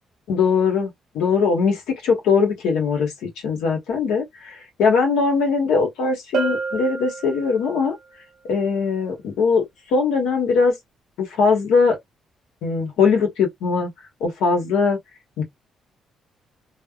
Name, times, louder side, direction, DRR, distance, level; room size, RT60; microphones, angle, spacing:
voice 1, 0.3-0.9 1.1-7.9 8.5-9.6 9.9-10.7 11.2-12.0 12.6-13.9 14.2-15.0 15.4-15.5, left 5 dB, 90° left, 1.1 m, -20 dB
Bell, 6.3-7.9, right 5 dB, 70° right, 0.6 m, -28 dB
3.3 x 2.1 x 2.3 m
cardioid pair, 90°, 0 cm